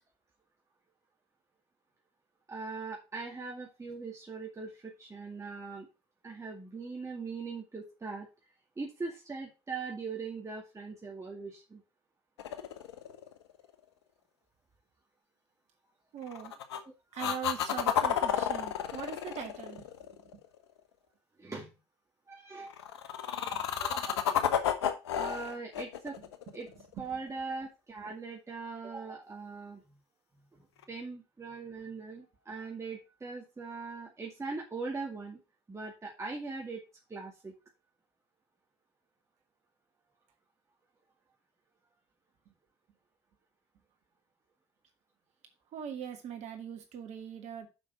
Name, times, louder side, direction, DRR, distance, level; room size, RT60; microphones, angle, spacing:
voice 1, 2.5-5.9 6.2-8.3 8.8-11.8 16.8-16.9 18.3-18.4 21.4-21.7 22.3-22.7 23.4-23.5 23.8-24.2 25.1-26.2 26.5-29.8 30.5-35.4 35.7-36.8 37.1-37.5, right 4 dB, 20° right, -1 dB, 2.2 m, -41 dB
sound 1, 12.4-13.6 16.3-16.8 17.2-20.5 22.7-27.1 30.8-30.9, left 9 dB, 80° left, 0.9 m, -31 dB
voice 2, 16.1-16.5 17.1-19.9 23.5-23.6 27.0-27.1 45.7-47.7, right 8 dB, 55° right, 5 dB, 2.0 m, -41 dB
6.9 x 5.8 x 5.7 m, 0.28 s
figure-of-eight pair, 55°, 14 cm